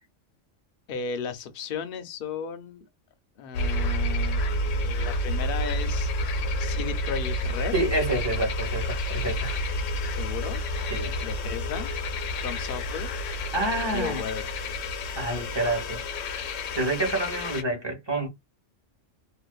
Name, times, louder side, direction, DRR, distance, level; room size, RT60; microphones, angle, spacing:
voice 1, 0.9-2.8 3.4-6.1 6.6-7.7 10.1-10.6 11.2-11.9 12.3-13.1 13.9-14.5, left 7 dB, 55° left, 0.7 m, -35 dB
sound 1, 3.5-17.6, left 1 dB, 80° left, 1.0 m, -29 dB
voice 2, 7.7-9.6 10.9-11.2 13.5-14.3 15.2-16.0 16.7-18.3, right 2 dB, 20° right, 1.0 m, -28 dB
2.5 x 2.5 x 2.2 m
omnidirectional pair, 1.3 m